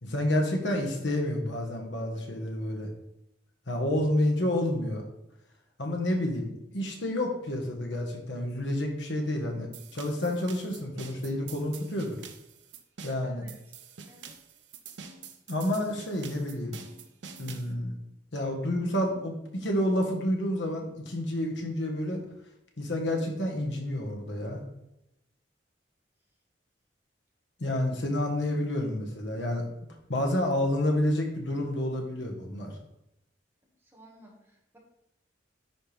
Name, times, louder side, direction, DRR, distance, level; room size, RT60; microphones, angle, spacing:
voice 1, 0.0-2.9 3.7-5.0 5.8-12.2 13.0-13.5 15.5-16.7 17.4-18.0 18.3-22.2 22.8-24.6 27.6-29.7 30.1-32.8, left 1 dB, 85° left, 2 dB, 1.5 m, -29 dB
sound 1, 9.7-17.7, right 6 dB, 80° right, 0.8 m, -46 dB
voice 2, 13.1-13.5 14.1-14.4 33.8-34.8, right 1 dB, 10° right, -2 dB, 1.8 m, -56 dB
10.0 x 4.5 x 3.5 m, 0.87 s
head